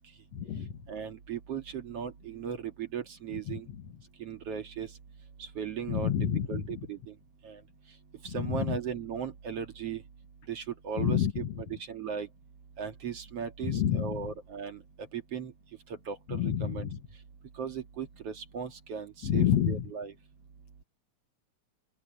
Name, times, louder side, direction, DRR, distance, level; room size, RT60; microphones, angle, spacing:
voice 1, 0.9-3.7 4.2-4.9 5.4-6.1 6.5-7.0 7.4-7.6 8.2-10.0 10.5-12.3 12.8-14.8 15.1-15.5 16.1-16.9 17.6-20.1, right 7 dB, 55° right, 2.9 m, -37 dB
voice 2, 5.9-6.6 8.5-8.8 11.0-11.3 13.7-14.1 16.4-16.7 19.3-19.8, left 9 dB, 65° left, 2.7 m, -27 dB
open air
omnidirectional pair, 3.3 m